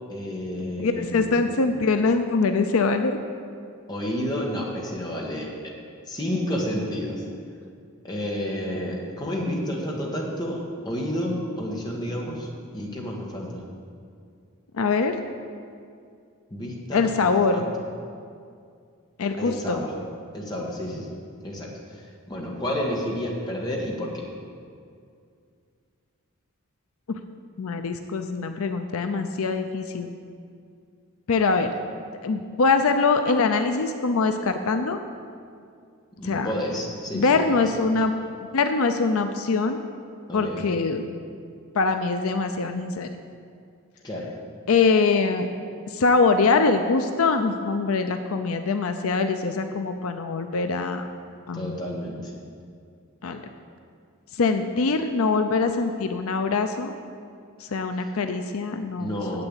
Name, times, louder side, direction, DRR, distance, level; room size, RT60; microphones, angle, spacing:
voice 1, 0.1-1.6 3.9-5.7 6.1-7.2 8.0-12.5 12.7-13.6 16.5-17.6 19.4-19.9 20.3-21.1 21.4-22.0 22.3-24.3 36.2-37.6 40.3-40.6 44.0-44.3 51.5-52.3 59.0-59.4, equal, 20° left, -2 dB, 1.4 m, -30 dB
voice 2, 0.8-3.2 14.7-15.2 16.9-17.7 19.2-19.8 27.6-30.1 31.3-31.7 32.2-35.0 36.2-36.5 37.1-38.1 38.5-39.8 40.3-41.1 41.8-43.1 44.7-45.5 45.9-51.1 51.5-51.8 53.2-53.4 54.3-56.9 57.6-59.4, left 4 dB, 75° left, 7 dB, 0.5 m, -23 dB
7.9 x 6.9 x 8.1 m, 2.3 s
head